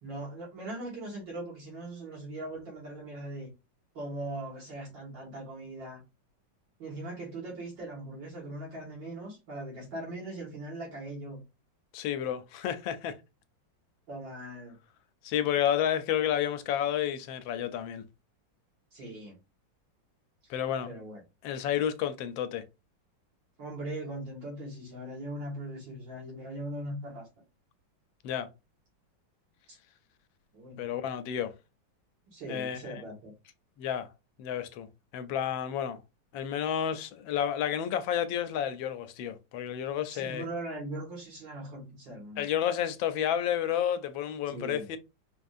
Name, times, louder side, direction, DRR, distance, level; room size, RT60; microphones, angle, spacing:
voice 1, 0.0-3.5 3.9-6.0 6.8-11.4 14.1-14.8 18.9-19.4 20.4-20.5 20.8-21.2 23.6-27.3 29.7-29.8 30.5-30.8 32.3-33.3 40.1-42.5 44.5-44.9, right 1 dB, 70° right, 2.4 m, -40 dB
voice 2, 11.9-13.2 15.2-18.0 20.5-20.9 21.4-22.6 28.2-28.5 30.8-31.5 32.5-32.8 33.8-34.1 34.4-34.9 35.1-36.0 36.3-40.4 42.4-45.0, left 10 dB, 85° left, 1.4 m, -30 dB
4.9 x 2.6 x 2.4 m
omnidirectional pair, 2.1 m